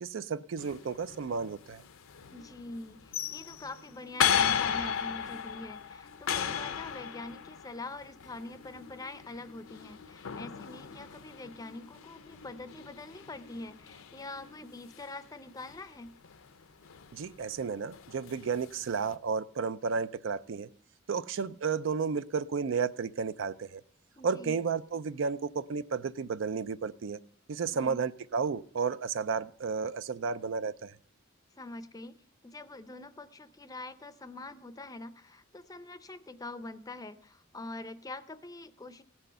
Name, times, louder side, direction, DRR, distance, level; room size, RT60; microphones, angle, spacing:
voice 1, 0.0-1.8 17.1-20.7 21.1-23.8 24.2-27.2 27.5-30.9, right 5 dB, 60° right, 15 dB, 0.4 m, -32 dB
sound 1, 0.6-19.1, left 8 dB, 75° left, 0.6 m, -36 dB
voice 2, 2.3-16.2 24.1-24.5 27.7-28.0 31.6-32.2 32.4-39.0, left 2 dB, 15° left, 13 dB, 0.5 m, -44 dB
16.5 x 6.2 x 6.7 m, 0.62 s
head